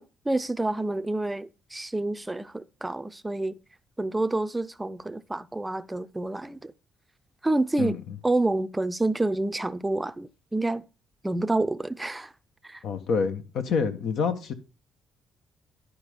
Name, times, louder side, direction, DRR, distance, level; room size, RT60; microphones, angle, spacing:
voice 1, 0.3-3.6 4.0-6.7 7.4-8.0 8.2-10.9 11.2-12.3 12.6-12.8, right 2 dB, 15° right, 0.6 m, -28 dB
voice 2, 7.8-8.2 12.8-14.5, left 5 dB, 75° left, 1.5 m, -27 dB
11.5 x 5.0 x 5.2 m
cardioid pair, 90°, 0 cm